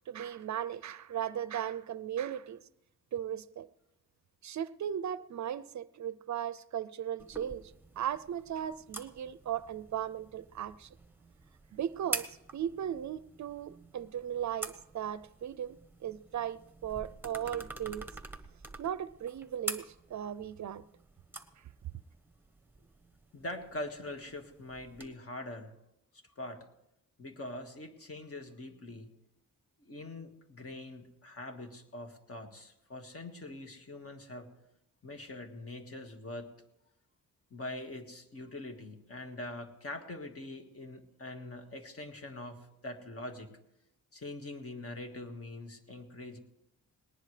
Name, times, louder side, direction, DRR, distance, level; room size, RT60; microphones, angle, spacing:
voice 1, 0.0-2.6 3.1-3.7 4.4-7.6 8.0-10.9 11.7-12.3 12.5-18.1 18.8-20.8, right 10 dB, 55° right, 0.5 m, -37 dB
sound 1, 7.2-25.1, right 2 dB, 5° right, 1.3 m, -46 dB
voice 2, 23.3-25.7 26.1-26.7 27.2-29.1 29.8-34.5 35.0-36.5 37.5-43.6 44.1-46.4, left 2 dB, 45° left, 1.8 m, -43 dB
19.5 x 19.0 x 3.3 m
cardioid pair, 95°, 34 cm